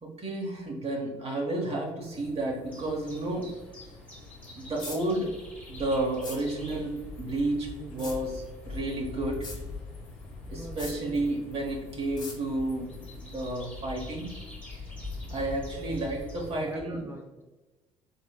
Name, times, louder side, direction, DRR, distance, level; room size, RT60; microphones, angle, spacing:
voice 1, 0.0-3.5 4.6-5.3 5.7-9.5 10.5-14.3 15.3-17.0, right 2 dB, 40° right, -1 dB, 0.9 m, -31 dB
sound 1, 2.0-16.7, left 1 dB, 70° left, 0.7 m, -52 dB
sound 2, 2.7-16.5, left 3 dB, 10° left, 1.0 m, -43 dB
sound 3, 4.8-5.0 6.2-6.4 8.0-8.2 9.4-9.6 10.8-11.0 12.2-12.4, left 3 dB, 30° left, 1.0 m, -40 dB
voice 2, 7.8-8.2 10.5-11.0 15.5-15.9 16.6-17.4, right 1 dB, 15° right, 1 dB, 0.4 m, -42 dB
3.4 x 3.0 x 2.3 m, 1.1 s
hypercardioid pair, 55°, 16 cm